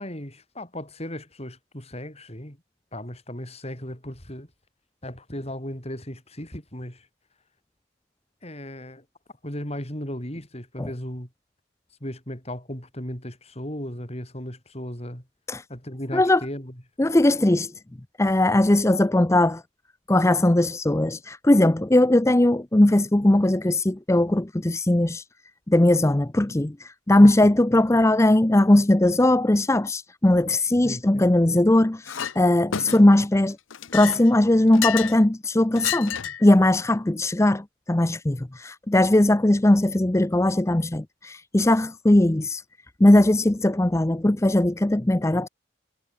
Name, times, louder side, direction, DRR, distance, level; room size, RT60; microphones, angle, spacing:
voice 1, 0.0-2.6 2.9-4.5 5.0-7.1 8.4-9.0 9.4-11.3 12.0-15.3 15.7-16.8 27.2-27.3 30.8-31.6, left 1 dB, 30° left, 6.9 m, -36 dB
voice 2, 17.0-17.7 18.2-19.6 20.1-25.2 25.7-33.6 33.9-42.6 43.0-45.5, left 1 dB, 15° left, 0.6 m, -19 dB
Chink clink, 32.1-32.4 32.7-33.2 33.7-35.2 35.8-36.5, left 9 dB, 85° left, 0.8 m, -30 dB
head